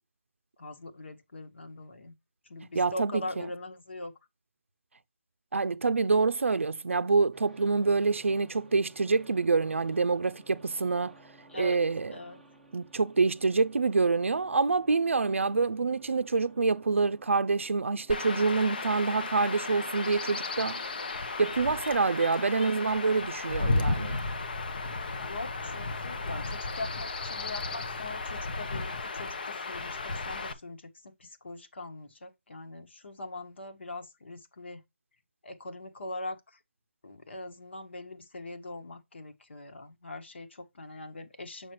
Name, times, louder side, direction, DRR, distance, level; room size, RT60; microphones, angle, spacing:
voice 1, 0.6-2.1 2.5-4.1 11.5-11.8 12.1-12.4 22.6-22.7 25.2-30.9 31.2-34.8 35.4-36.4 37.0-41.7, left 2 dB, 60° left, 1.6 m, -41 dB
voice 2, 2.7-3.5 5.5-11.1 11.6-12.1 12.7-20.8 21.4-24.2, right 4 dB, 90° right, 0.5 m, -26 dB
sound 1, 7.3-21.4, right 1 dB, ahead, 0.7 m, -57 dB
Chirp tweet / Wind / Stream, 18.1-30.5, left 3 dB, 45° left, 0.8 m, -34 dB
6.4 x 5.9 x 3.1 m
hypercardioid pair, 170°, 7 cm